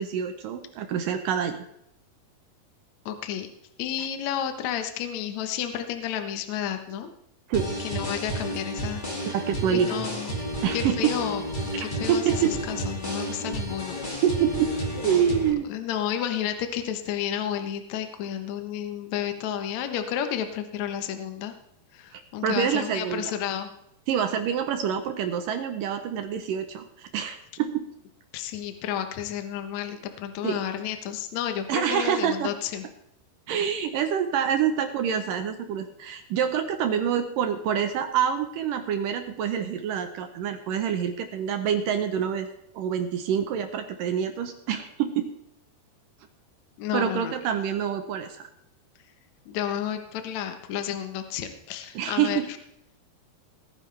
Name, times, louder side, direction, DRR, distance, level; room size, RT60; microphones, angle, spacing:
voice 1, 0.0-1.7 4.0-4.1 7.5-7.8 9.2-10.0 10.6-11.1 11.8-12.5 14.2-15.7 22.1-23.3 24.1-27.9 30.4-30.6 31.7-32.5 33.5-42.5 42.7-45.3 46.9-48.5 51.9-52.4, right 8 dB, 70° right, 8 dB, 2.2 m, -26 dB
voice 2, 3.1-3.5 3.8-7.1 7.8-9.4 9.7-10.4 10.7-11.4 11.8-14.0 15.7-21.5 21.9-23.7 28.3-32.8 46.8-47.3 49.5-52.4, left 10 dB, 65° left, 7 dB, 1.8 m, -31 dB
sound 1, 7.5-15.5, right 1 dB, 20° left, 1.3 m, -32 dB
20.0 x 9.8 x 3.4 m, 0.76 s
omnidirectional pair, 4.6 m